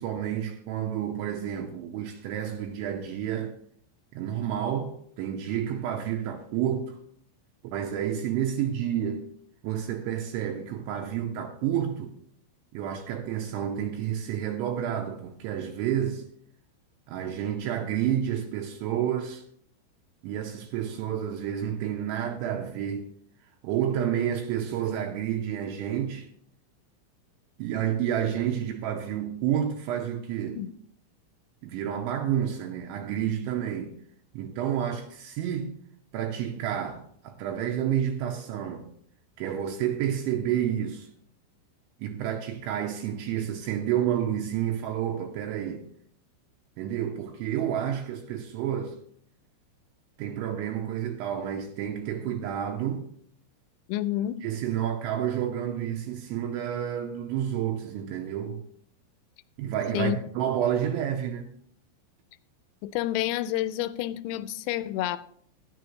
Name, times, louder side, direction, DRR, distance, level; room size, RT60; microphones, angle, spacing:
voice 1, 0.0-3.5 4.1-7.0 7.6-9.3 9.6-12.2 12.7-16.2 17.1-19.4 20.2-23.1 23.6-26.3 27.6-30.6 31.6-34.0 34.3-35.7 36.1-38.9 39.4-41.1 42.0-45.8 46.8-49.0 50.2-53.1 54.4-58.6 59.6-61.5, right 10 dB, 85° right, 2.8 m, -30 dB
voice 2, 53.9-54.4 59.9-60.2 62.8-65.2, left 13 dB, 85° left, 3.2 m, -29 dB
13.5 x 10.5 x 3.1 m
omnidirectional pair, 5.9 m